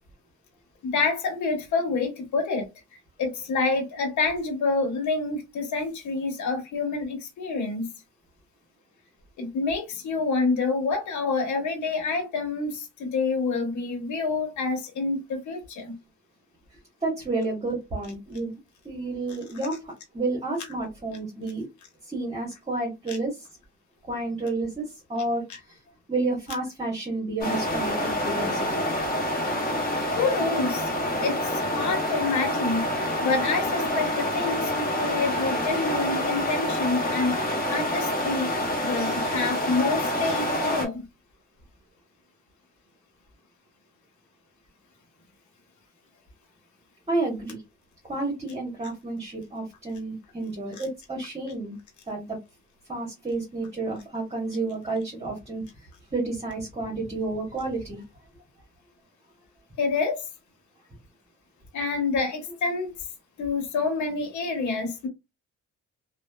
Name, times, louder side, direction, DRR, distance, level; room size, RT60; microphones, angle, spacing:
voice 1, 0.8-2.7 3.2-7.9 9.4-16.0 23.1-23.2 30.2-30.9 31.2-41.1 59.8-60.3 61.7-62.9 63.4-65.1, left 4 dB, 70° left, 1.0 m, -27 dB
voice 2, 17.0-18.6 18.8-21.7 22.0-23.5 24.1-25.8 26.1-28.8 47.1-47.6 48.1-51.7 52.1-52.4 52.9-55.6 56.1-58.0, right 2 dB, 20° right, 1.1 m, -30 dB
sound 1, 27.4-40.9, left 1 dB, 30° left, 1.2 m, -27 dB
2.8 x 2.1 x 2.2 m
cardioid pair, 90°, 30 cm